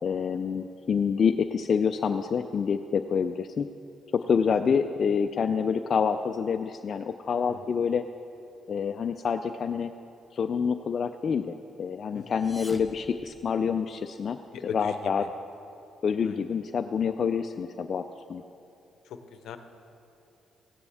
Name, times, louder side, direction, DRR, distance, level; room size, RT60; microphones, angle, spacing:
voice 1, 0.0-3.7 4.1-8.0 8.7-9.9 10.3-14.4 14.6-15.3 16.0-18.4, left 6 dB, 50° left, 6 dB, 0.3 m, -27 dB
voice 2, 7.4-7.7 12.1-12.4 14.5-15.3 16.2-16.4 19.0-19.6, left 7 dB, 75° left, 8 dB, 0.7 m, -40 dB
sound 1, 12.2-14.1, equal, ahead, 0.7 m, -47 dB
15.5 x 9.6 x 3.5 m, 2.8 s
cardioid pair, 90°, 0 cm